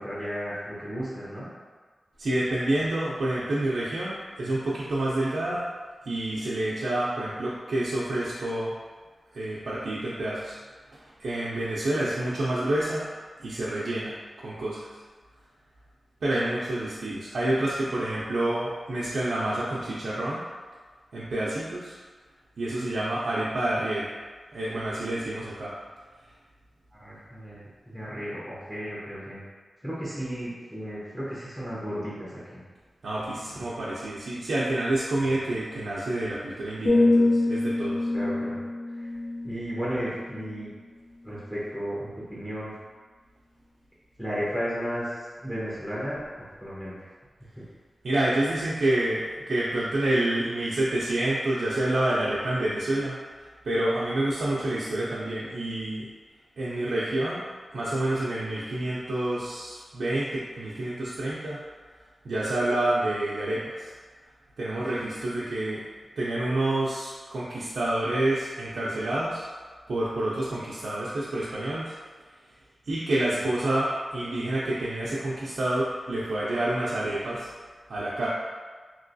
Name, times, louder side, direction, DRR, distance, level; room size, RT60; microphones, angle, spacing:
voice 1, 0.0-1.5 27.0-29.4 29.8-32.6 38.1-38.6 39.0-39.1 39.4-40.7 41.2-42.7 44.2-45.1 45.4-46.2 46.6-47.0 73.3-73.4, equal, 5° left, -8 dB, 0.9 m, -34 dB
voice 2, 2.2-5.6 6.1-8.7 9.3-10.6 10.9-13.1 13.4-15.0 16.2-20.4 21.1-22.0 22.6-24.1 24.5-25.7 33.0-38.1 48.0-56.1 56.6-57.4 57.7-61.6 62.2-63.9 64.6-65.8 66.2-69.4 69.9-71.9 72.9-77.5 77.9-78.3, right 1 dB, 85° right, -8 dB, 0.5 m, -28 dB
sound 1, 36.8-40.8 41.2-41.5, left 2 dB, 50° left, 0.8 m, -26 dB
3.0 x 2.9 x 2.6 m, 1.4 s
wide cardioid pair, 75°, 0 cm